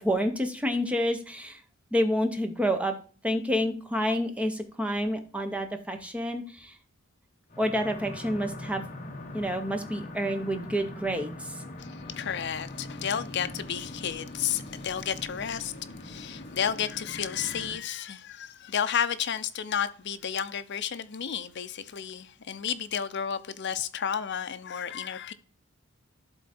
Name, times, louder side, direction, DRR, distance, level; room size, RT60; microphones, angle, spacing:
voice 1, 0.0-1.6 1.9-3.0 3.2-6.7 7.6-8.8 9.3-11.6, equal, 5° right, 0.8 m, -28 dB
sound 1, 7.5-17.8, left 1 dB, 35° left, 1.1 m, -42 dB
voice 2, 11.8-15.7 16.0-25.3, left 8 dB, 55° left, 0.6 m, -32 dB
11.5 x 3.9 x 4.3 m
head